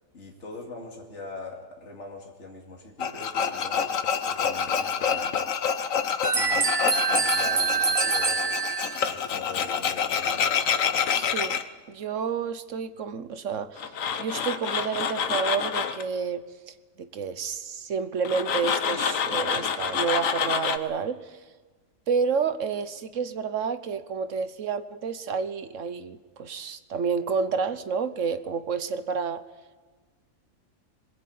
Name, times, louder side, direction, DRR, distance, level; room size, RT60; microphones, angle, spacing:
voice 1, 0.1-3.9 4.3-5.4 6.3-6.8 7.1-10.6, left 3 dB, 55° left, 2.8 m, -42 dB
Tools, 3.0-11.6 13.8-16.0 18.2-20.8, left 7 dB, 70° left, 1.4 m, -27 dB
sound 1, 6.2-9.1, right 5 dB, 30° right, 0.7 m, -25 dB
voice 2, 11.1-13.9 14.2-21.3 22.1-29.4, right 6 dB, 65° right, 1.3 m, -30 dB
21.5 x 20.0 x 8.6 m
omnidirectional pair, 1.4 m